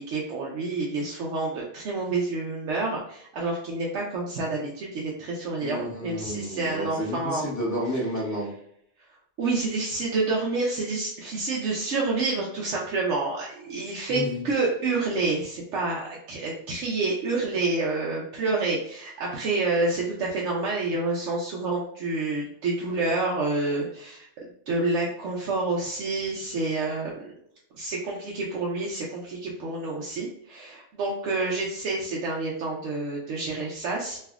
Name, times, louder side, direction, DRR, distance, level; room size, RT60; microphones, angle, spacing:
voice 1, 0.0-7.4 9.4-24.3 24.7-27.3 27.8-34.2, right 3 dB, 85° right, -3 dB, 0.9 m, -28 dB
voice 2, 5.6-8.5 14.1-14.4, equal, 15° left, -5 dB, 1.1 m, -31 dB
3.2 x 2.6 x 2.3 m, 0.71 s
omnidirectional pair, 1.2 m